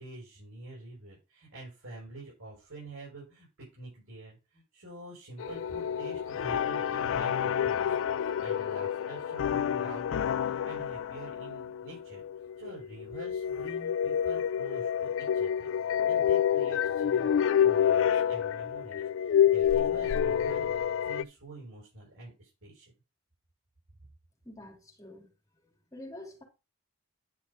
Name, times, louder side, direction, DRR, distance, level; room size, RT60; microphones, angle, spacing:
voice 1, 0.0-12.2 12.6-15.7 16.0-20.7 21.0-22.9, right 2 dB, 90° right, 6.4 m, -47 dB
sound 1, 5.4-21.2, left 9 dB, 65° left, 0.3 m, -28 dB
voice 2, 24.4-25.3 25.5-26.4, left 1 dB, 15° left, 3.3 m, -47 dB
10.5 x 5.8 x 3.6 m
head